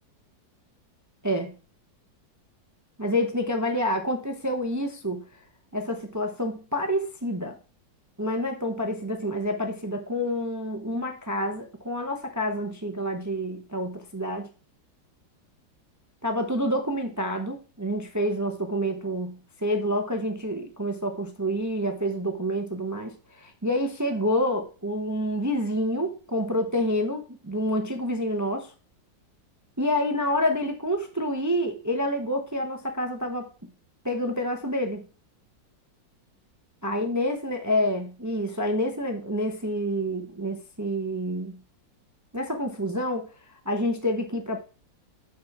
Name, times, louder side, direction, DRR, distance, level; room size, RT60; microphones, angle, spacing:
voice 1, 1.2-1.5 3.0-5.2 5.7-7.6 8.2-14.5 16.2-28.7 29.8-33.5 34.0-35.0 36.8-41.6 42.3-43.3 43.7-44.6, equal, 25° right, 0.3 m, -28 dB
6.3 x 6.2 x 5.9 m
omnidirectional pair, 2.0 m